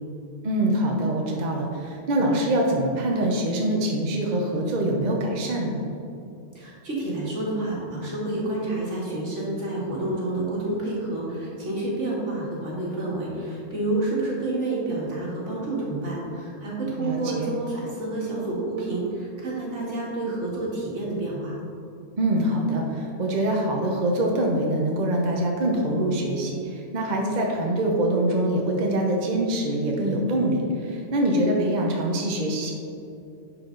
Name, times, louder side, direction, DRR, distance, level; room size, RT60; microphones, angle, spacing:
voice 1, 0.4-5.8 17.0-17.5 22.2-32.7, right 1 dB, 40° right, 0 dB, 0.9 m, -24 dB
voice 2, 6.5-21.6, right 2 dB, 75° right, -5 dB, 2.2 m, -29 dB
10.5 x 4.7 x 3.9 m, 2.7 s
omnidirectional pair, 1.3 m